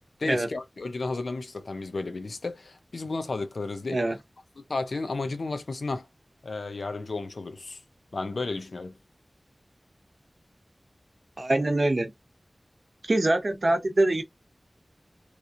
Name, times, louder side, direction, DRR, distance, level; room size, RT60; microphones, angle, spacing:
voice 1, 0.2-4.0 4.6-6.1 6.4-7.8 8.1-9.0, left 3 dB, 85° left, 0.6 m, -33 dB
voice 2, 11.4-12.1 13.0-14.2, right 2 dB, 55° right, 0.7 m, -24 dB
3.0 x 2.4 x 2.6 m
wide cardioid pair, 60°, 0 cm